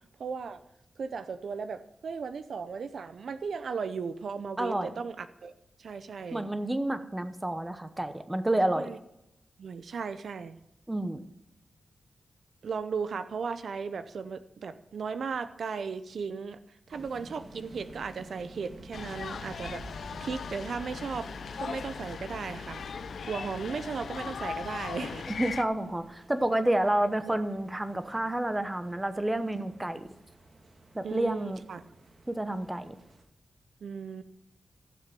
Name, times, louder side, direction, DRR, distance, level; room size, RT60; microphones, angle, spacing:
voice 1, 0.2-0.6 1.0-5.5 5.8-6.5 8.8-9.0 9.6-10.6 12.6-16.6 16.9-21.3 21.6-22.8 23.3-25.3 27.3-27.4 31.0-31.8 33.8-34.2, right 5 dB, 75° right, 12 dB, 0.6 m, -36 dB
voice 2, 4.6-5.0 6.3-8.9 10.9-11.2 25.3-30.1 30.9-31.6 32.3-33.0, right 1 dB, 15° right, 10 dB, 0.9 m, -29 dB
sound 1, 16.9-33.2, right 2 dB, 55° right, 2.0 m, -50 dB
sound 2, 18.9-25.6, left 6 dB, 75° left, 0.5 m, -39 dB
15.5 x 7.5 x 5.3 m, 0.83 s
wide cardioid pair, 115°, 0 cm